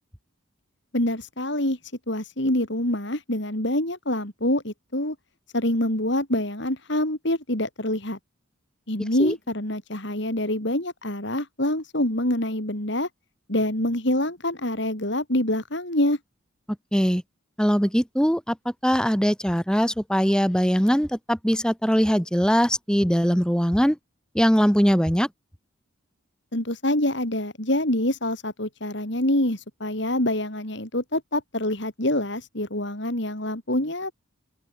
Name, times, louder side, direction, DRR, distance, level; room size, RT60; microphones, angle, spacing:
voice 1, 0.9-1.8 2.1-5.2 5.5-8.2 8.9-13.1 13.5-16.2 26.5-34.1, left 1 dB, 55° left, 3.9 m, -26 dB
voice 2, 16.9-17.2 17.6-18.6 18.8-24.0 24.3-25.3, equal, 5° left, 5.8 m, -21 dB
open air
head